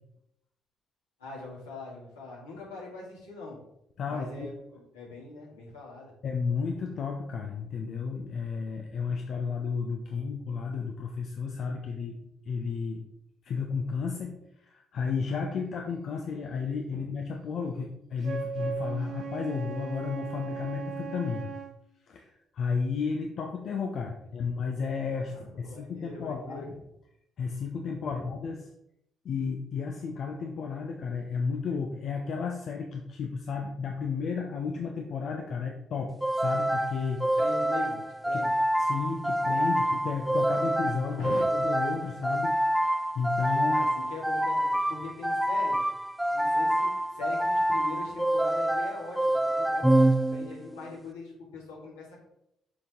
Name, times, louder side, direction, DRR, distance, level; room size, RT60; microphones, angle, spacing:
voice 1, 1.2-3.6 4.1-6.1 10.1-10.2 16.9-17.0 25.3-26.7 28.0-28.2 37.4-38.0 38.2-38.5 41.2-41.4 43.7-45.8 46.3-52.2, left 3 dB, 85° left, -6 dB, 2.6 m, -42 dB
voice 2, 4.0-4.6 6.2-12.2 12.5-13.1 13.4-14.3 14.6-21.5 22.1-26.7 27.4-28.6 29.2-37.3 38.3-38.4 38.8-42.6 43.1-43.8, left 5 dB, 55° left, 2 dB, 0.7 m, -33 dB
Wind instrument woodwind instrument, 18.2-21.8, right 6 dB, 60° right, 1.0 m, -37 dB
sound 1, 36.2-50.8, right 1 dB, 5° right, 0.4 m, -27 dB
6.9 x 5.3 x 3.8 m, 0.80 s
figure-of-eight pair, 40°, 0 cm